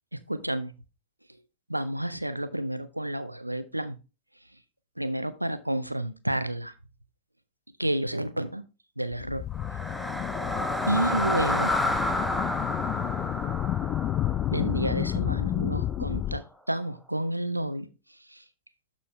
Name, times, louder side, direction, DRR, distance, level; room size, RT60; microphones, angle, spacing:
voice 1, 0.3-0.7 1.7-3.9 5.0-6.7 7.8-8.6 9.0-9.4 10.9-11.7 14.5-17.9 18.3-18.4, right 1 dB, 85° right, 12 dB, 0.7 m, -30 dB
sound 1, 9.1-16.4, left 12 dB, 35° left, 0.3 m, -30 dB
sound 2, 9.5-15.7, left 1 dB, ahead, 0.7 m, -30 dB
12.0 x 4.2 x 3.2 m, 0.30 s
figure-of-eight pair, 90°, 0 cm